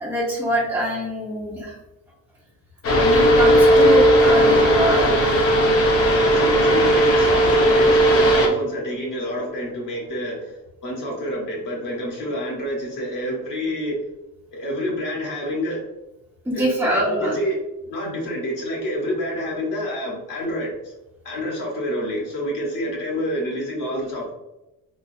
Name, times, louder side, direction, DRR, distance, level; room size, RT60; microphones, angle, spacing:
voice 1, 0.0-1.8 2.9-5.1 16.5-17.4, equal, 10° right, -7 dB, 0.6 m, -24 dB
sound 1, 2.8-8.5, equal, 40° left, 0.7 m, -16 dB
voice 2, 6.2-13.9 14.5-15.8 16.5-17.6 17.9-20.9 21.2-24.3, equal, 60° left, -2 dB, 1.3 m, -28 dB
3.7 x 2.4 x 2.6 m, 0.98 s
cardioid pair, 150°, 36 cm